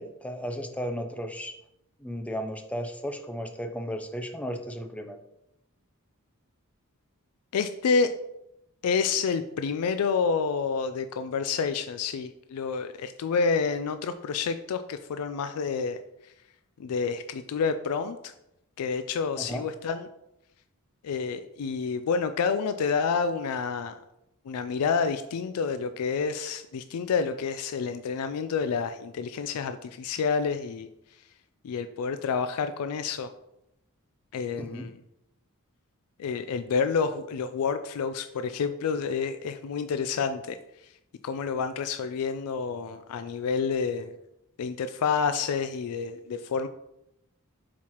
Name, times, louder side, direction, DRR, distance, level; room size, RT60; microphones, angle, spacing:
voice 1, 0.0-1.5 2.0-5.2 19.4-19.7 34.6-34.9, equal, 5° left, 6 dB, 0.4 m, -35 dB
voice 2, 7.5-8.1 8.8-16.0 16.8-18.3 18.8-20.1 21.0-23.9 24.5-30.9 31.6-33.3 34.3-35.0 36.2-40.6 41.2-44.1 44.6-46.7, left 5 dB, 75° left, 10 dB, 0.3 m, -29 dB
7.1 x 4.7 x 3.0 m, 0.84 s
head